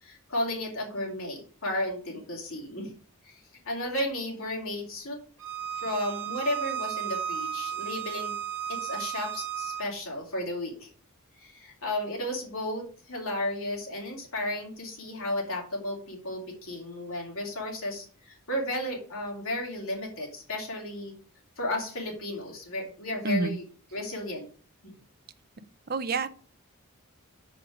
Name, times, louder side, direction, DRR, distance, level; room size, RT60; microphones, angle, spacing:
voice 1, 0.0-2.9 3.3-3.4 3.6-5.2 5.8-8.3 8.7-10.9 11.4-21.1 21.6-23.6 23.9-24.5 24.8-24.9, left 1 dB, 70° left, -1 dB, 2.8 m, -33 dB
Bowed string instrument, 5.4-9.8, right 10 dB, 60° right, 1.5 m, -34 dB
voice 2, 23.2-23.6 25.9-26.3, right 3 dB, 45° right, 12 dB, 0.5 m, -28 dB
6.3 x 5.1 x 5.9 m, 0.41 s
head